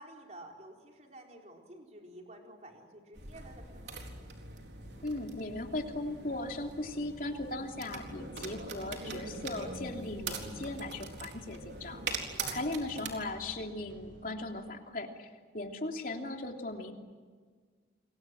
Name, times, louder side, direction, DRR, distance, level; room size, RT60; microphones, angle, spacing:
voice 1, 0.0-3.9 12.1-12.6, right 1 dB, 35° right, 1 dB, 4.4 m, -51 dB
sound 1, 3.1-13.1, right 4 dB, 65° right, 4.1 m, -42 dB
sound 2, 3.7-14.3, equal, 90° right, 7.7 m, -54 dB
voice 2, 5.0-12.0 12.5-15.3 15.5-16.9, left 2 dB, 50° left, 3 dB, 3.1 m, -38 dB
28.5 x 23.5 x 7.8 m, 1.5 s
head